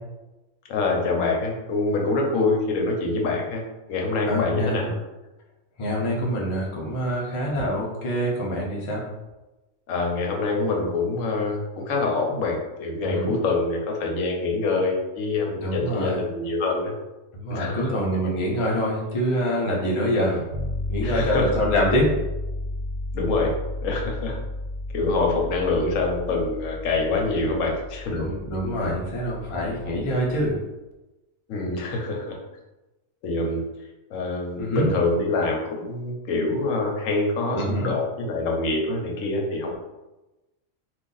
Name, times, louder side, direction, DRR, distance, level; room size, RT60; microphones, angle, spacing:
voice 1, 0.7-3.6 3.9-5.0 9.9-16.9 17.5-17.9 20.2-20.4 21.0-21.6 23.1-23.5 23.8-24.4 24.9-28.1 30.4-30.5 31.5-32.4 33.2-33.6 34.1-39.8, left 3 dB, 80° left, 0 dB, 1.0 m, -25 dB
voice 2, 4.3-4.8 5.8-9.1 13.0-13.3 15.6-16.2 17.3-20.4 20.9-22.1 28.1-30.6 34.6-34.9 37.5-37.9, equal, 35° left, -3 dB, 0.5 m, -25 dB
sound 1, 20.5-30.6, left 2 dB, 80° right, 1.0 m, -33 dB
2.6 x 2.5 x 3.8 m, 1.1 s
omnidirectional pair, 1.4 m